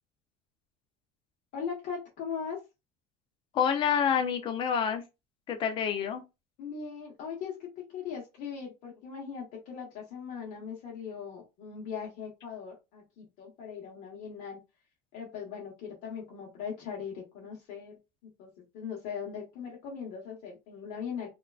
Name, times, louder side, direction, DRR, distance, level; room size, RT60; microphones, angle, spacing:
voice 1, 1.5-2.6 6.6-14.6 15.1-18.0 18.2-18.5 18.7-21.3, left 6 dB, 50° left, 1.1 m, -39 dB
voice 2, 3.5-5.0 5.5-6.2, left 7 dB, 30° left, 0.5 m, -27 dB
3.6 x 2.3 x 2.3 m
cardioid pair, 165°, 16 cm